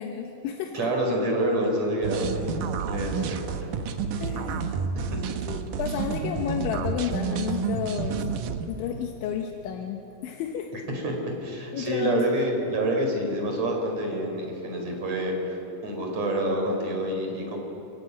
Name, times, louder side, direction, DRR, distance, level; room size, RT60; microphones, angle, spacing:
voice 1, 0.0-0.8 4.2-4.7 5.5-8.3 8.7-10.7 11.7-12.2, left 8 dB, 80° left, 2 dB, 3.6 m, -31 dB
voice 2, 0.7-3.7 5.0-5.2 10.7-17.6, right 1 dB, 35° right, 1 dB, 5.3 m, -28 dB
sound 1, 2.0-8.7, right 6 dB, 85° right, 1.8 m, -30 dB
28.5 x 17.0 x 9.5 m, 3.0 s
omnidirectional pair, 5.3 m